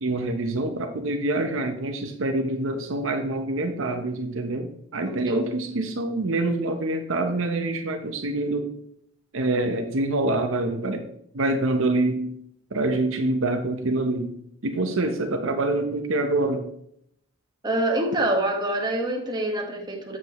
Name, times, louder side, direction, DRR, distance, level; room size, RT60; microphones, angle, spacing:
voice 1, 0.0-8.8 9.3-11.1 11.3-12.3 12.7-14.4 14.6-16.7, right 2 dB, 70° right, 6 dB, 0.8 m, -26 dB
voice 2, 5.0-5.4 17.6-20.2, right 1 dB, 20° right, 1 dB, 1.4 m, -26 dB
7.8 x 7.6 x 3.0 m, 0.72 s
head